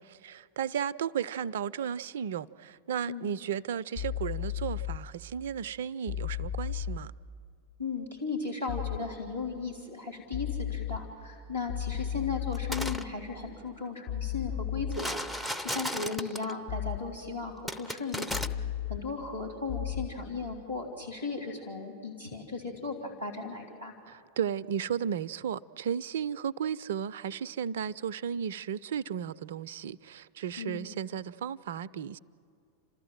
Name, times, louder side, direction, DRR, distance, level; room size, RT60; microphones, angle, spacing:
voice 1, 0.0-7.1 24.1-32.2, right 8 dB, 60° right, 0.4 m, -34 dB
sound 1, 3.9-5.0 6.1-7.0 8.7-9.0 10.3-11.0 11.7-13.0 14.1-15.0 16.7-17.0 18.3-19.0 19.7-20.1, left 10 dB, 45° left, 1.9 m, -34 dB
voice 2, 7.8-23.9 30.6-30.8, left 4 dB, 80° left, 3.2 m, -36 dB
sound 2, 12.5-13.0 14.9-16.5 17.7-18.5, equal, ahead, 0.7 m, -34 dB
29.5 x 13.5 x 7.7 m
figure-of-eight pair, 90°, 0 cm